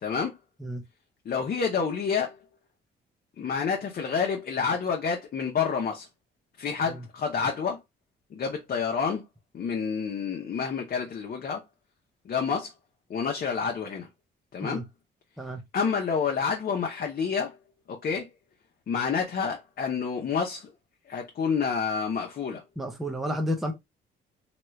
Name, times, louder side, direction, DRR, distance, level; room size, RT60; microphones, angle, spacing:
voice 1, 1.3-2.4 3.4-6.1 6.6-7.8 8.3-9.2 9.5-11.6 12.3-12.7 13.1-14.1 14.5-14.8 15.7-17.6 17.9-18.3 18.9-20.7 21.1-22.6, left 6 dB, 50° left, 0.7 m, -28 dB
voice 2, 22.8-23.7, equal, ahead, 0.7 m, -31 dB
3.0 x 2.3 x 3.1 m
cardioid pair, 90°, 20 cm